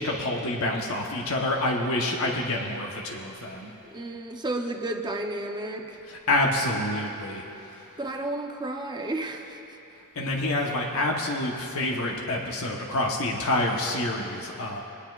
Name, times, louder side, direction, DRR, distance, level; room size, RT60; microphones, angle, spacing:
voice 1, 0.0-3.7 6.1-7.4 10.2-14.8, left 1 dB, 70° left, -1 dB, 1.1 m, -27 dB
voice 2, 3.9-6.0 8.0-9.6, right 2 dB, 20° right, 3 dB, 0.7 m, -32 dB
21.0 x 9.9 x 2.4 m, 2.8 s
head